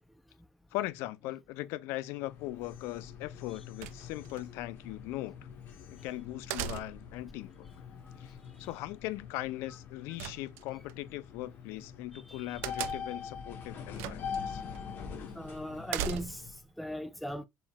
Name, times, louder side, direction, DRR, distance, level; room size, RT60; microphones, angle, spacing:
voice 1, 0.7-5.4 5.9-7.7 8.2-14.6, left 16 dB, 80° left, 0.4 m, -39 dB
sound 1, 2.2-16.6, left 6 dB, 50° left, 0.9 m, -44 dB
sound 2, 3.8-4.4 6.5-7.2 10.2-10.9 12.6-13.2 14.0-14.4 14.7-14.8 15.9-16.6, right 11 dB, 80° right, 0.4 m, -37 dB
voice 2, 12.1-12.4 15.3-17.5, equal, ahead, 0.3 m, -39 dB
4.4 x 3.7 x 2.2 m
cardioid pair, 125°, 4 cm